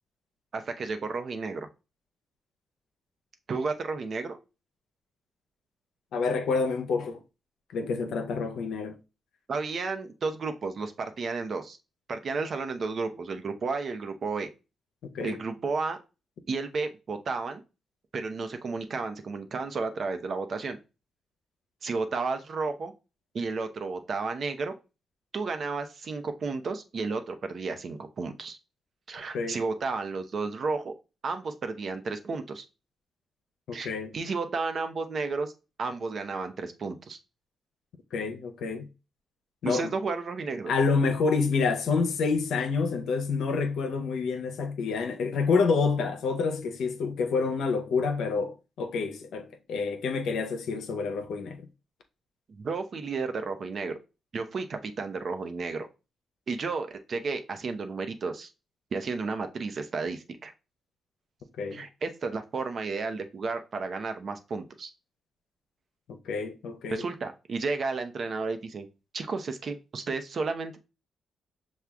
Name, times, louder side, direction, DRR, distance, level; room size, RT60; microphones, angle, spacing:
voice 1, 0.5-1.7 3.5-4.4 9.5-11.8 12.1-14.5 15.2-16.0 16.5-17.6 18.1-20.8 21.8-22.9 23.3-24.7 25.3-28.6 29.1-30.9 31.2-32.6 33.7-35.5 35.8-37.2 39.6-40.7 52.6-54.0 54.3-55.9 56.5-58.5 58.9-60.5 61.7-64.9 66.9-68.9 69.1-70.8, right 4 dB, 55° right, 0.7 m, -32 dB
voice 2, 6.1-7.2 7.7-9.0 15.1-15.4 29.3-29.6 33.7-34.1 38.1-38.9 39.6-39.9 40.7-51.7 61.6-61.8 66.1-67.0, left 4 dB, 80° left, 0.7 m, -28 dB
6.0 x 2.3 x 3.5 m
supercardioid pair, 60°, 0 cm